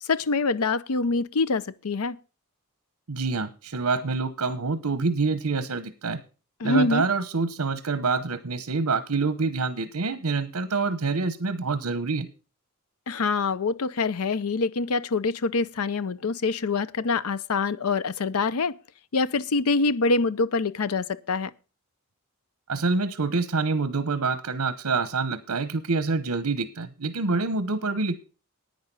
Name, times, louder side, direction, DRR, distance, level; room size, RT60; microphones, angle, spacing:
voice 1, 0.0-2.2 6.6-7.0 13.1-18.8 19.1-21.5, left 4 dB, 75° left, 0.6 m, -25 dB
voice 2, 3.1-6.2 6.6-12.3 22.7-28.2, right 4 dB, 85° right, 1.0 m, -26 dB
10.5 x 9.4 x 5.4 m
head